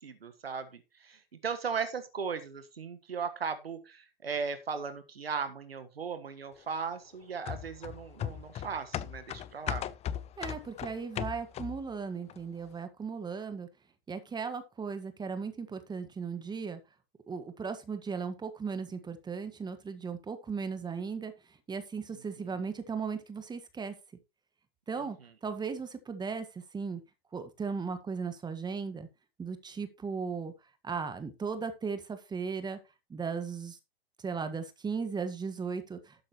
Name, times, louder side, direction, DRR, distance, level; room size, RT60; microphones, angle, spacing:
voice 1, 0.0-9.8 22.4-22.6, right 6 dB, 90° right, 10 dB, 1.5 m, -37 dB
sound 1, 7.5-11.9 12.3-12.4, left 10 dB, 20° left, 0.7 m, -37 dB
voice 2, 10.4-13.7 14.1-16.8 17.3-21.3 21.7-23.9 24.9-25.2 25.4-27.0 27.3-29.1 29.4-30.5 30.8-32.8 33.1-33.8 34.2-36.1, right 5 dB, 15° right, 9 dB, 1.6 m, -36 dB
13.0 x 8.8 x 3.1 m, 0.26 s
hypercardioid pair, 110°, 29 cm